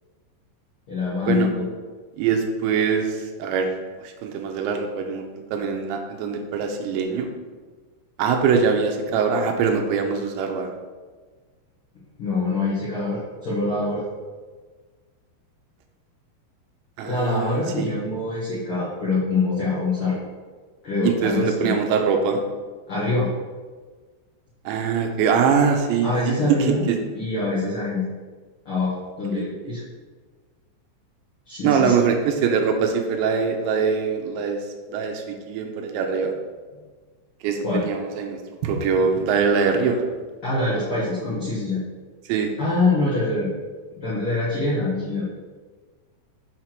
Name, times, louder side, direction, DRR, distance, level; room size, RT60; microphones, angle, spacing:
voice 1, 0.9-1.7 12.2-14.0 17.0-20.2 20.8-21.7 22.9-23.3 26.0-26.8 27.1-28.1 28.6-29.8 31.5-31.9 37.6-37.8 40.4-41.8 42.6-43.5 44.0-45.3, left 3 dB, 80° left, -8 dB, 1.2 m, -24 dB
voice 2, 2.2-3.7 4.0-5.2 5.5-7.3 8.2-10.7 17.0-17.9 21.0-22.4 24.7-27.0 29.3-29.7 31.6-34.6 34.9-36.3 37.4-40.0 42.3-42.5, right 6 dB, 85° right, 4 dB, 3.0 m, -23 dB
7.3 x 5.9 x 4.5 m, 1.4 s
omnidirectional pair, 5.2 m